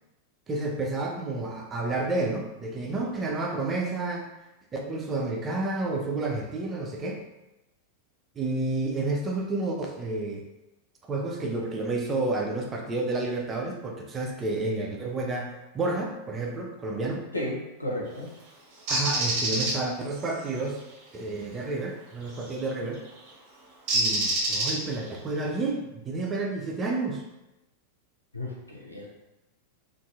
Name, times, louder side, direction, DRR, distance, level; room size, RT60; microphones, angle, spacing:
voice 1, 0.5-4.3 4.7-7.2 8.4-10.4 11.1-17.3 18.9-20.8 21.1-23.0 23.9-27.2, right 2 dB, 20° right, 0 dB, 0.5 m, -30 dB
voice 2, 17.3-18.3 28.3-29.1, left 1 dB, 85° left, -3 dB, 0.6 m, -33 dB
Bird, 18.9-19.7 22.4-22.6 23.9-25.1, right 1 dB, 40° right, 0.8 m, -25 dB
2.6 x 2.5 x 2.3 m, 0.97 s
figure-of-eight pair, 90°, 0 cm